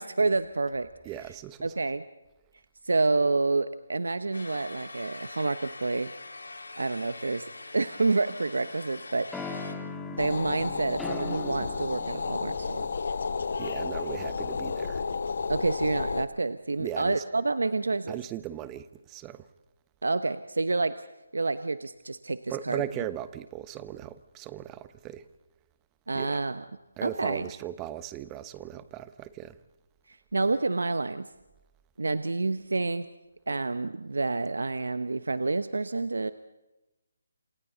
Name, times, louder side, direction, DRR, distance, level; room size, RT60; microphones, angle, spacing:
voice 1, 0.0-0.9 1.6-2.0 2.8-6.1 6.8-7.5 7.7-9.6 10.2-12.8 15.5-18.2 20.0-20.9 21.3-22.8 26.1-26.6 27.0-27.5 30.1-31.3 32.0-33.1 33.5-36.3, right 3 dB, 85° right, 1.0 m, -28 dB
voice 2, 1.0-1.7 13.6-15.0 16.8-17.2 18.1-19.5 22.5-25.2 26.1-26.4 27.0-29.6, right 12 dB, 15° right, 1.0 m, -38 dB
sound 1, 4.3-9.7, left 3 dB, 85° left, 4.0 m, -44 dB
sound 2, 7.8-8.7 9.3-13.0, left 3 dB, 5° left, 1.9 m, -39 dB
sound 3, 10.2-16.3, left 4 dB, 60° left, 1.1 m, -32 dB
28.0 x 27.5 x 4.0 m
figure-of-eight pair, 160°, 0 cm